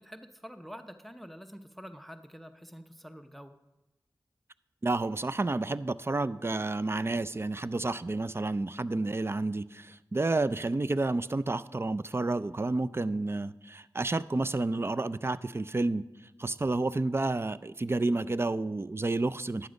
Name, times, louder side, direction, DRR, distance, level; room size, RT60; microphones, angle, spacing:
voice 1, 0.0-3.6, equal, ahead, 8 dB, 0.7 m, -47 dB
voice 2, 4.8-16.0 16.4-19.7, right 2 dB, 30° right, 15 dB, 0.4 m, -30 dB
11.5 x 8.6 x 5.2 m, 0.99 s
cardioid pair, 45°, 8 cm